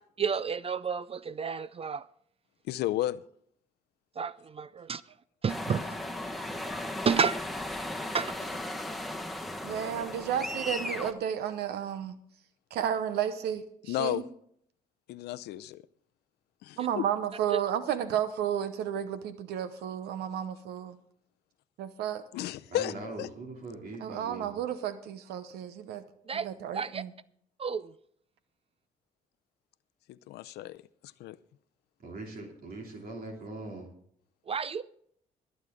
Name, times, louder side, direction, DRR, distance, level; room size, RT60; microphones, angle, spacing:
voice 1, 0.2-2.0 4.2-5.0 5.4-5.8 7.1-7.4 8.1-8.3 17.5-17.6 26.3-26.5 26.7-27.0 27.6-27.9 34.5-34.8, right 6 dB, 35° right, 0.4 m, -30 dB
voice 2, 2.7-3.2 5.7-5.9 13.9-14.2 15.1-15.8 16.6-17.0 22.3-23.3 30.1-31.4, left 14 dB, 80° left, 0.6 m, -33 dB
sound 1, 5.5-11.1, left 1 dB, ahead, 1.3 m, -36 dB
voice 3, 9.6-12.2 12.7-14.2 16.8-21.0 21.8-22.2 24.0-26.0 26.3-27.1, right 9 dB, 80° right, 0.8 m, -32 dB
voice 4, 22.7-24.6 32.0-33.9, right 2 dB, 60° right, 2.9 m, -41 dB
23.5 x 8.2 x 3.7 m
supercardioid pair, 65°, 17 cm